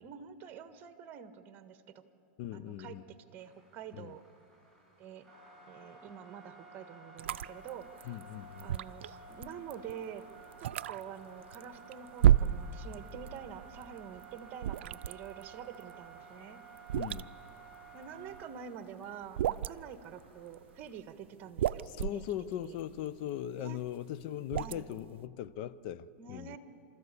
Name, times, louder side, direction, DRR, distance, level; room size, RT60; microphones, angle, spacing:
voice 1, 0.0-2.0 2.5-4.2 5.0-5.3 5.7-8.2 8.6-10.2 10.6-16.6 17.9-22.2 22.6-22.8 23.6-23.8 24.5-24.9 26.2-26.6, right 8 dB, 35° right, 1.4 m, -47 dB
voice 2, 2.4-3.0 3.9-4.1 8.0-8.7 16.9-17.3 21.8-26.6, left 11 dB, 55° left, 0.7 m, -39 dB
sound 1, 3.4-20.9, right 4 dB, 5° left, 6.7 m, -54 dB
sound 2, 7.2-13.4 13.6-18.7 19.1-19.9 20.5-21.0 21.3-25.2, right 11 dB, 80° right, 0.5 m, -32 dB
29.5 x 13.5 x 8.4 m
supercardioid pair, 130°, 6 cm